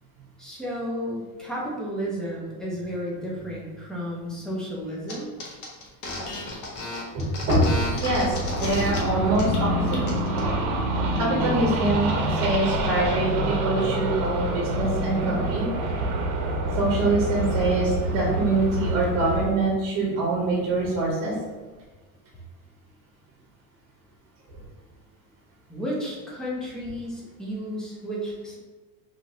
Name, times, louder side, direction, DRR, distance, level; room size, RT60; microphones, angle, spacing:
voice 1, 0.4-5.3 25.7-28.6, equal, ahead, -5 dB, 0.4 m, -32 dB
sound 1, 5.1-5.2 5.4-9.0 9.3-9.6 9.9-10.4, left 2 dB, 45° left, 0.9 m, -32 dB
voice 2, 7.1-7.7 8.0-10.0 11.1-15.6 16.7-21.3, right 2 dB, 35° right, -4 dB, 0.9 m, -24 dB
sound 2, 7.4-19.5, right 1 dB, 75° right, 0.7 m, -27 dB
3.0 x 2.7 x 2.8 m, 1.3 s
supercardioid pair, 135°, 43 cm